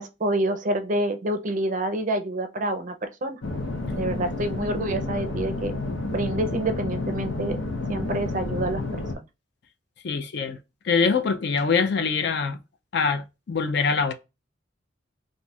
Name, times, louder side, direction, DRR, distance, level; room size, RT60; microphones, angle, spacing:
voice 1, 0.0-3.4 3.9-5.7 6.1-7.6 7.9-9.0, right 1 dB, 40° right, 0.4 m, -27 dB
sound 1, 3.4-9.2, left 2 dB, 80° left, 0.8 m, -30 dB
voice 2, 10.0-10.6 10.9-12.6 12.9-14.1, left 5 dB, 55° left, 0.4 m, -24 dB
2.5 x 2.4 x 4.0 m
head